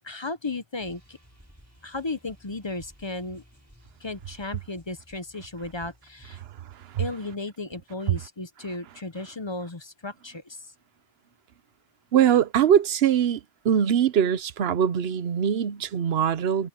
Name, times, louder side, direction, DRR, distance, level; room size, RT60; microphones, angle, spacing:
voice 1, 0.0-1.2 1.8-3.4 4.0-6.4 7.0-10.7, left 3 dB, 30° left, 0.7 m, -35 dB
sound 1, 0.8-6.5, equal, 15° right, 5.9 m, -55 dB
voice 2, 12.1-16.7, right 9 dB, 65° right, 1.0 m, -22 dB
omnidirectional pair, 1.2 m